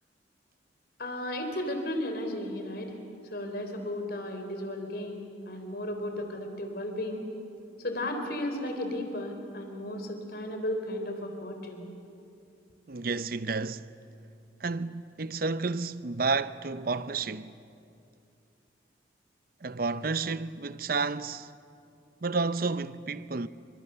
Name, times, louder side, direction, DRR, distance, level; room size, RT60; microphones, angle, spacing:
voice 1, 1.0-2.9 3.3-7.3 7.8-11.9, left 1 dB, 50° left, 3.7 m, -34 dB
voice 2, 12.9-13.9 14.6-17.6 19.6-21.5 22.2-23.5, right 4 dB, 50° right, 0.7 m, -31 dB
30.0 x 25.0 x 6.9 m
head